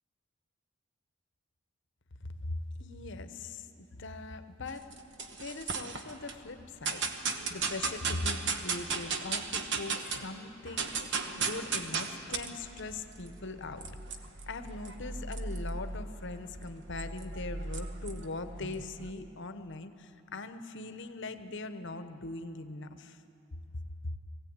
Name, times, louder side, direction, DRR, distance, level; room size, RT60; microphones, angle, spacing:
voice 1, 2.4-4.9 5.4-11.0 11.4-13.9 14.5-23.2 24.0-24.1, left 2 dB, 60° left, 9 dB, 1.0 m, -41 dB
sound 1, 4.7-6.3 6.8-10.3 10.6-19.1, right 4 dB, 60° right, 1.3 m, -36 dB
21.0 x 16.0 x 8.9 m, 2.6 s
head